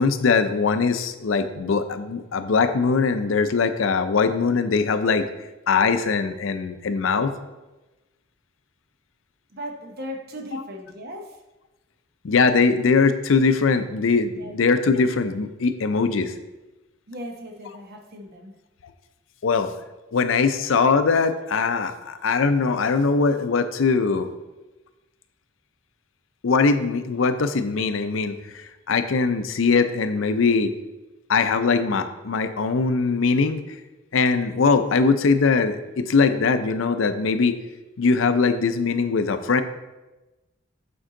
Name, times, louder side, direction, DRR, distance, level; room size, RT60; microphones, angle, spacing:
voice 1, 0.0-5.3 5.7-7.3 10.5-10.6 12.2-16.3 19.4-19.7 20.1-24.3 26.4-30.7 31.3-33.8 34.1-37.6 38.0-39.6, left 4 dB, 85° left, 10 dB, 0.5 m, -21 dB
voice 2, 9.5-11.3 14.3-14.5 17.1-18.5, equal, 55° right, 4 dB, 0.9 m, -37 dB
7.8 x 4.5 x 3.8 m, 1.1 s
head